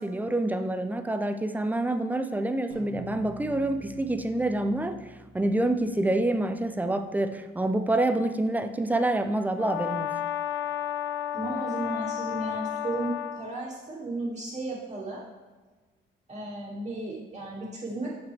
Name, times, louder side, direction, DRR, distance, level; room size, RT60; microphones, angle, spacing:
voice 1, 0.0-5.0 5.3-10.2, right 1 dB, 10° right, 8 dB, 0.5 m, -27 dB
sound 1, 2.7-7.3, right 2 dB, 80° right, 2.1 m, -47 dB
Brass instrument, 9.5-13.4, left 11 dB, 65° left, 0.8 m, -32 dB
voice 2, 11.3-15.3 16.3-18.1, right 2 dB, 35° right, -9 dB, 2.1 m, -34 dB
7.4 x 5.9 x 3.4 m, 1.3 s
cardioid pair, 90°, 20 cm